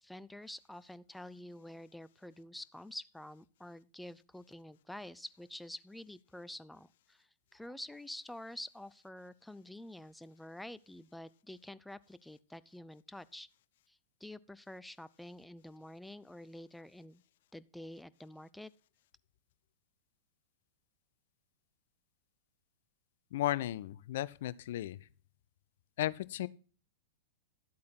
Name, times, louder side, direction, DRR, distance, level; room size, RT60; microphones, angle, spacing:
voice 1, 0.0-13.5 13.9-17.2 17.5-18.7, left 1 dB, 5° left, 0.5 m, -48 dB
voice 2, 23.3-25.0 26.0-26.5, left 14 dB, 60° left, 0.5 m, -34 dB
12.0 x 8.4 x 4.4 m
figure-of-eight pair, 100°, 0 cm